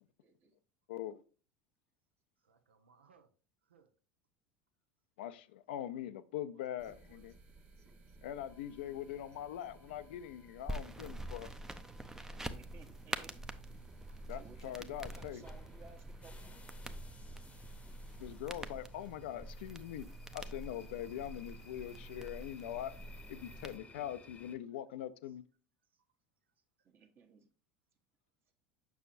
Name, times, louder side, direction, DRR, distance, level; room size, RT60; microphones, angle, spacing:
voice 1, 0.2-0.6 6.8-6.9 7.8-8.2 12.3-13.4 14.3-16.7 20.7-20.8 26.8-27.5, right 5 dB, 40° right, 1.2 m, -59 dB
voice 2, 0.9-1.2 5.2-7.3 8.2-11.5 14.3-15.4 18.2-20.0 20.3-22.9 23.3-25.4, left 11 dB, 70° left, 0.5 m, -42 dB
voice 3, 2.4-3.3 3.6-3.9 6.5-7.3 14.1-14.3 17.4-17.5 25.9-26.0 26.8-26.9, right 6 dB, 85° right, 0.8 m, -68 dB
sound 1, 6.8-18.3, right 3 dB, 25° right, 1.3 m, -59 dB
sound 2, 8.5-24.6, left 4 dB, 20° left, 0.8 m, -61 dB
sound 3, 10.7-23.8, right 1 dB, 10° right, 0.6 m, -46 dB
7.0 x 5.9 x 2.5 m
hypercardioid pair, 80°, 6 cm